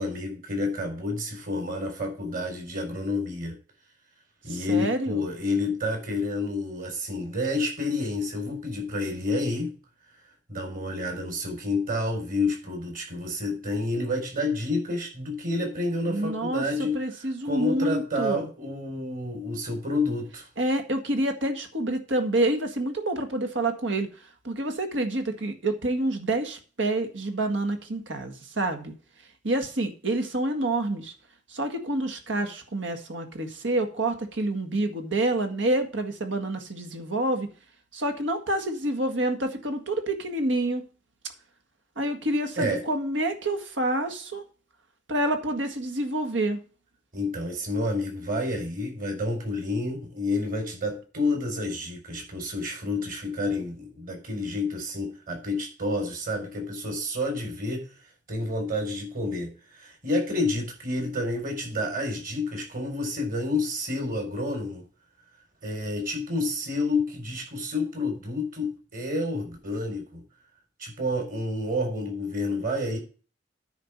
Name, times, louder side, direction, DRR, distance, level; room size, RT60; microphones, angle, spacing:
voice 1, 0.0-3.6 4.4-9.7 10.5-17.0 17.4-20.5 42.6-42.8 47.1-57.9 58.3-64.8 65.6-70.2 70.8-73.0, left 2 dB, 50° right, 4.6 m, -29 dB
voice 2, 4.5-5.2 16.1-18.5 20.6-24.1 24.4-28.9 29.4-31.1 31.5-37.5 37.9-40.9 42.0-44.4 45.1-46.6, right 1 dB, 90° right, 1.9 m, -28 dB
9.9 x 4.8 x 7.4 m
head